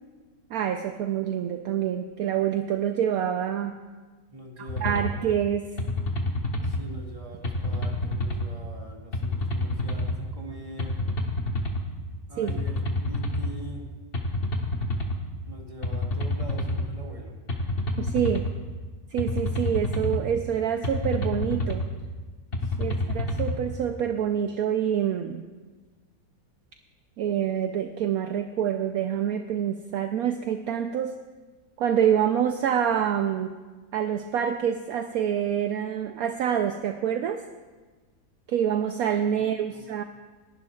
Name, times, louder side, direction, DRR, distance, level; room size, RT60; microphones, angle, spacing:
voice 1, 0.5-3.8 4.6-5.7 12.4-12.6 18.0-18.5 19.1-21.9 22.8-25.4 27.2-31.1 31.8-33.5 33.9-37.4 38.5-40.0, right 9 dB, 70° right, 6 dB, 0.9 m, -26 dB
voice 2, 4.3-5.3 6.6-11.0 12.3-13.9 15.5-17.4 22.6-23.2 39.4-39.9, right 1 dB, 20° right, -2 dB, 2.0 m, -43 dB
sound 1, 4.7-5.1 5.8-6.8 7.4-8.5 9.1-10.2 10.8-11.8 12.5-13.5 14.1-15.2 15.8-16.9 17.5-18.5 19.2-20.2 20.8-21.9 22.5-23.5, left 1 dB, 35° left, 1.3 m, -28 dB
29.0 x 11.0 x 2.3 m, 1.4 s
omnidirectional pair, 1.9 m